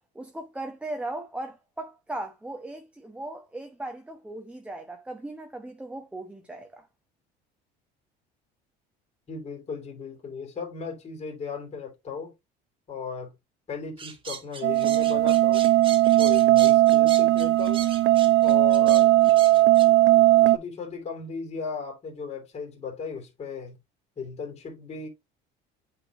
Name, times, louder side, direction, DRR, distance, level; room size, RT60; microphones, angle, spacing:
voice 1, 0.1-6.9, right 2 dB, 5° right, 0.9 m, -38 dB
voice 2, 9.3-12.3 12.9-13.3 13.7-15.6 16.2-17.8 18.4-19.2 20.5-23.8 24.2-25.1, left 5 dB, 35° left, 3.1 m, -36 dB
sound 1, 14.0-19.9, right 6 dB, 25° right, 1.5 m, -39 dB
sound 2, 14.6-20.6, right 16 dB, 75° right, 0.8 m, -18 dB
8.7 x 4.4 x 2.9 m
cardioid pair, 130°, 20 cm